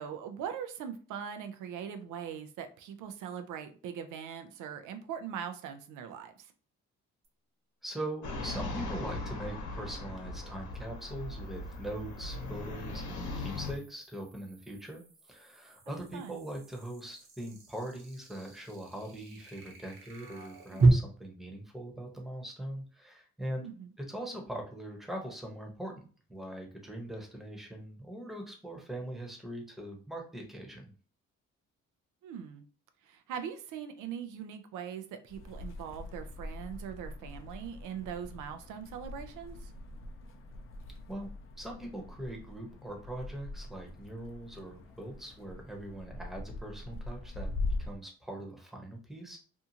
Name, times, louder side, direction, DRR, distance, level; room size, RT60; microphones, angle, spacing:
voice 1, 0.0-6.5 15.9-16.4 23.6-23.9 32.2-32.6 33.0-39.7, right 8 dB, 85° right, 8 dB, 0.5 m, -41 dB
sound 1, 7.2-7.3 10.8-20.9, right 3 dB, 45° right, 0.9 m, -35 dB
voice 2, 7.8-15.0 15.3-23.7 24.1-26.0 26.3-30.9 41.1-41.3 41.6-47.5 47.8-49.4, right 1 dB, ahead, 1 dB, 0.8 m, -41 dB
sound 2, 8.2-13.7, left 2 dB, 70° left, 0.9 m, -39 dB
sound 3, 35.3-48.0, left 2 dB, 45° left, 0.5 m, -42 dB
2.6 x 2.4 x 2.8 m, 0.40 s
cardioid pair, 90°, 30 cm